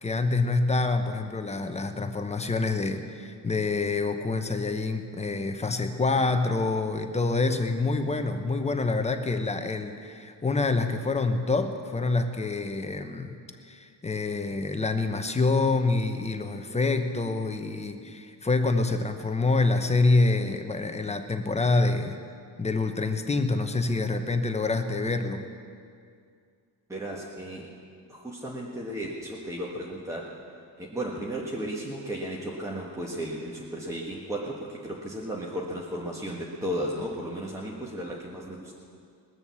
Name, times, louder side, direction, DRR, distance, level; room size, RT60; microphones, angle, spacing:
voice 1, 0.0-13.4 13.6-22.2 22.6-25.4, left 3 dB, 15° left, 7 dB, 0.9 m, -26 dB
voice 2, 26.9-27.7 28.1-30.4 30.8-38.7, right 1 dB, 5° right, -3 dB, 1.5 m, -34 dB
20.5 x 7.0 x 7.0 m, 2.3 s
cardioid pair, 120°, 42 cm